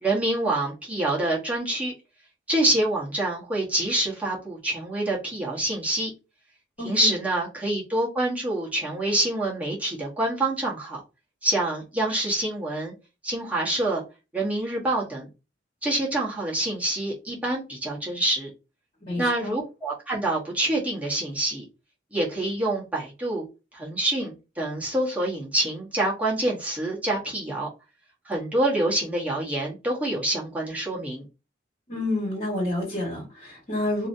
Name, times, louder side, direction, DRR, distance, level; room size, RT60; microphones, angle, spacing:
voice 1, 0.0-1.9 2.5-6.1 6.8-11.0 11.4-12.9 13.2-14.0 14.3-15.3 15.8-18.5 19.1-21.6 22.1-23.5 23.7-27.7 28.2-31.2, right 1 dB, 10° right, 1.1 m, -26 dB
voice 2, 6.8-7.1 19.1-19.5 31.9-34.1, left 1 dB, 35° left, 1.6 m, -29 dB
2.9 x 2.7 x 2.7 m
head